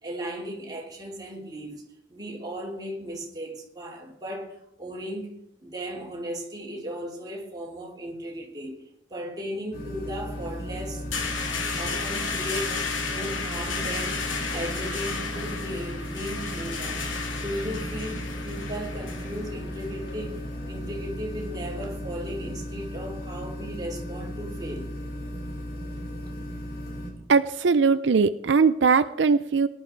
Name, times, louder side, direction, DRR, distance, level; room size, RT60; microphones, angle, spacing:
voice 1, 0.0-1.8 2.1-8.8 9.1-11.0 11.5-17.0 17.3-24.9, equal, 20° right, 3.3 m, -36 dB
sound 1, 9.7-27.1, equal, 50° left, 4.6 m, -36 dB
sound 2, 10.3-21.9, left 4 dB, 80° left, 2.7 m, -34 dB
voice 2, 27.3-29.7, right 5 dB, 65° right, 0.5 m, -20 dB
19.0 x 12.0 x 4.6 m
head